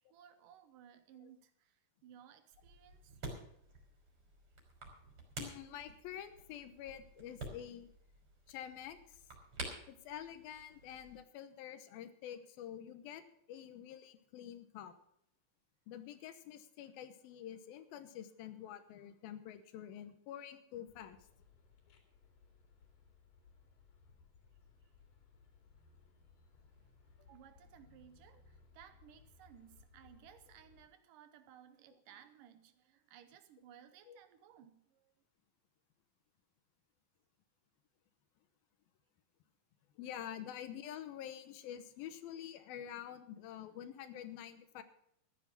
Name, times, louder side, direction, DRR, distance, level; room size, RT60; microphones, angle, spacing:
voice 1, 0.0-3.3 27.2-35.1, right 9 dB, 75° right, 2.4 m, -60 dB
sound 1, 2.5-11.2, right 2 dB, 40° right, 4.2 m, -50 dB
voice 2, 5.4-7.9 8.5-9.2 9.9-13.2 13.5-14.9 15.9-21.2 34.1-34.2 40.0-44.8, left 10 dB, 85° left, 2.8 m, -48 dB
sound 2, 20.9-30.9, left 4 dB, 70° left, 4.0 m, -64 dB
14.0 x 10.5 x 5.8 m
omnidirectional pair, 4.1 m